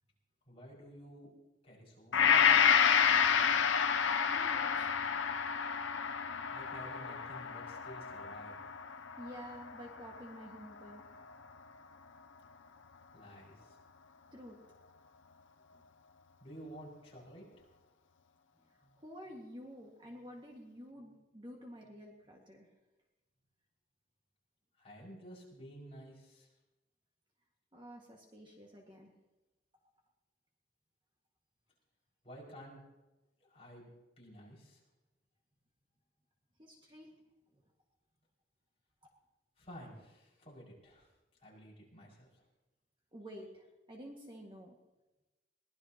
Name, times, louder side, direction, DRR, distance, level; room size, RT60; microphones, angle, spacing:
voice 1, 0.5-1.3 1.6-2.6 6.5-8.6 13.1-13.8 16.4-17.4 24.8-26.5 32.2-32.8 33.5-33.9 34.2-34.8 39.6-41.1 41.4-42.4, equal, 30° left, -4 dB, 5.9 m, -52 dB
Gong, 2.1-10.4 10.9-11.0, left 7 dB, 85° left, 0.7 m, -29 dB
voice 2, 4.3-5.0 9.2-11.2 14.3-14.6 15.7-15.8 18.7-22.7 27.7-29.1 36.6-37.2 37.5-37.6 43.1-44.8, equal, 25° right, -1 dB, 1.9 m, -50 dB
23.0 x 18.5 x 3.0 m, 1.1 s
head